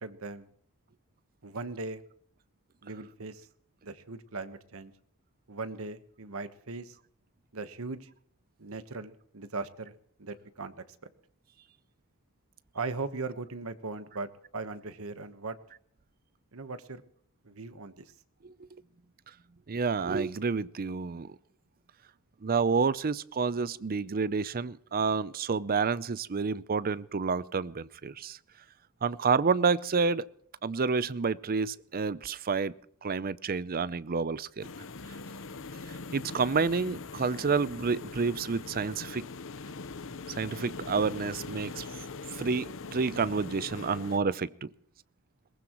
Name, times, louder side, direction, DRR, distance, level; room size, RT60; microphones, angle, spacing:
voice 1, 0.0-0.5 1.4-2.0 2.8-3.5 3.8-4.9 5.5-7.0 7.5-8.1 8.6-9.9 10.2-10.7 11.0-11.1 12.7-15.6 16.5-17.0 17.4-18.1, right 3 dB, 65° right, 11 dB, 1.2 m, -39 dB
voice 2, 19.7-21.3 22.4-28.4 29.0-30.3 30.6-32.7 33.0-34.7 36.1-39.3 40.4-41.8 42.4-44.7, right 5 dB, 40° right, 18 dB, 0.6 m, -29 dB
sound 1, 34.6-44.2, left 4 dB, 60° left, 0.9 m, -42 dB
22.0 x 19.0 x 3.1 m, 0.63 s
head